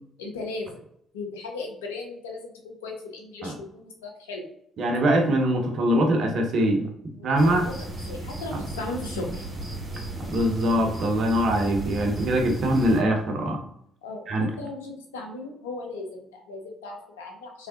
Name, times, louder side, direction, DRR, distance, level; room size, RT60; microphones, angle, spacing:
voice 1, 0.2-0.8 1.1-4.5 7.1-7.7 8.1-9.4 14.0-17.7, left 3 dB, 85° left, 1 dB, 0.6 m, -37 dB
voice 2, 4.8-6.9 7.2-7.6 8.5-8.6 10.2-13.6 14.3-14.5, right 1 dB, 55° right, 2 dB, 0.8 m, -23 dB
sound 1, 7.4-13.0, right 1 dB, 25° right, 1.2 m, -35 dB
3.3 x 3.3 x 2.5 m, 0.72 s
hypercardioid pair, 50°, 0 cm